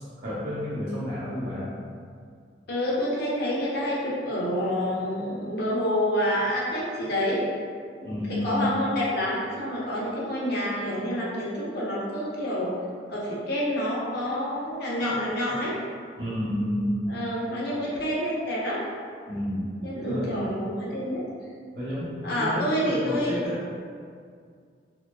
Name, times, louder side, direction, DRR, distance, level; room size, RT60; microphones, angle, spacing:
voice 1, 0.2-1.7 8.0-8.7 16.2-17.0 19.3-20.5 21.7-23.6, equal, 70° right, -10 dB, 1.1 m, -30 dB
voice 2, 2.7-7.4 8.0-8.1 8.4-12.7 13.1-15.7 17.1-18.8 19.8-21.2 22.2-23.4, equal, 65° left, -6 dB, 0.7 m, -28 dB
2.8 x 2.2 x 2.3 m, 2.1 s
head